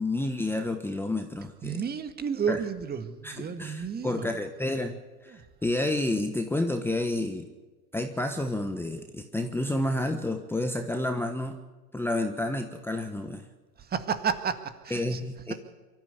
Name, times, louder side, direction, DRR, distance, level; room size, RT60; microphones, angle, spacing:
voice 1, 0.0-1.8 2.5-2.6 3.2-5.0 5.2-7.5 7.9-11.6 11.9-13.5 14.9-15.5, left 1 dB, 5° left, 6 dB, 1.2 m, -30 dB
voice 2, 1.6-4.3 5.3-5.4 13.8-15.2, right 7 dB, 20° right, 10 dB, 1.7 m, -31 dB
24.0 x 14.0 x 8.3 m, 1.3 s
hypercardioid pair, 115°, 47 cm